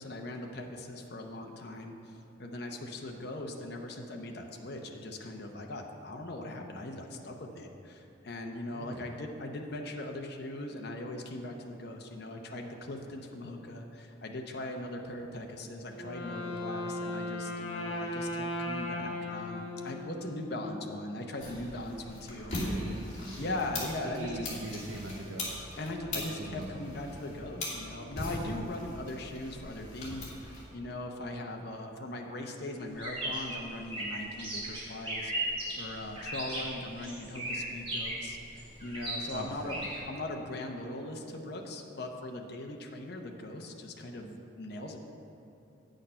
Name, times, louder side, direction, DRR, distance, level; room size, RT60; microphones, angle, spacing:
voice 1, 0.0-22.8 23.4-24.5 25.8-35.3 35.8-39.8 40.1-45.0, left 1 dB, 55° left, 2 dB, 0.7 m, -40 dB
voice 2, 8.7-9.1 22.5-23.7 24.0-25.6 26.1-27.2 39.3-40.1, right 1 dB, 65° right, 0 dB, 0.7 m, -41 dB
Wind instrument woodwind instrument, 15.9-20.8, left 1 dB, 75° left, 1.0 m, -37 dB
sound 1, 21.4-30.6, left 1 dB, 35° left, 2.3 m, -40 dB
sound 2, 32.9-40.0, right 1 dB, 30° right, 2.3 m, -36 dB
8.9 x 6.5 x 5.5 m, 2.7 s
head